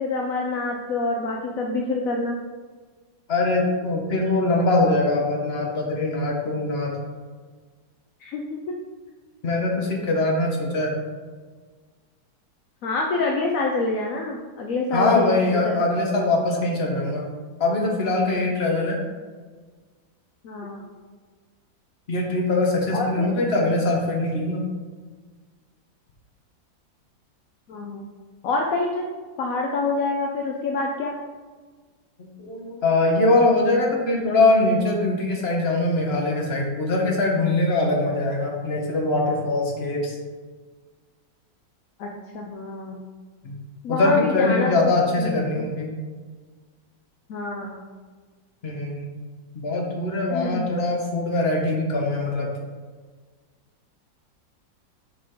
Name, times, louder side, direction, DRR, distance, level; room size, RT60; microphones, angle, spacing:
voice 1, 0.0-2.4 8.2-8.6 12.8-15.8 20.4-20.8 22.9-23.3 27.7-28.1 28.4-29.1 29.4-31.1 42.0-43.0 43.8-44.9 45.2-45.7 47.3-47.8 50.3-50.7, left 3 dB, 65° left, 1 dB, 0.9 m, -27 dB
voice 2, 3.3-7.0 9.4-10.9 14.9-17.2 17.6-19.0 22.1-24.6 32.2-40.2 43.4-43.6 43.9-45.9 48.6-49.1 49.5-52.5, left 2 dB, 35° left, -1 dB, 1.4 m, -22 dB
7.8 x 4.9 x 3.8 m, 1.5 s
omnidirectional pair, 2.0 m